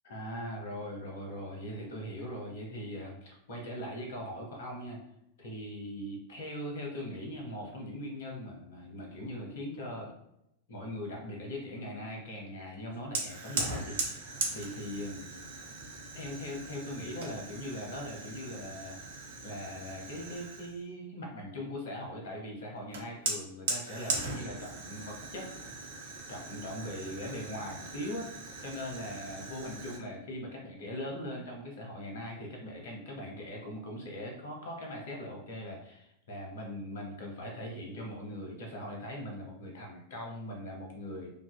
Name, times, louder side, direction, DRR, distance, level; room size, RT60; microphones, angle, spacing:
voice 1, 0.0-5.0 5.4-10.1 10.7-15.3 16.1-19.0 19.4-25.8 26.3-28.3 28.6-41.3, left 1 dB, 60° left, 0 dB, 0.7 m, -40 dB
Fire, 13.1-20.8 22.9-30.0, right 3 dB, 60° right, 0.4 m, -39 dB
2.5 x 2.3 x 2.2 m, 0.81 s
figure-of-eight pair, 90°, 0 cm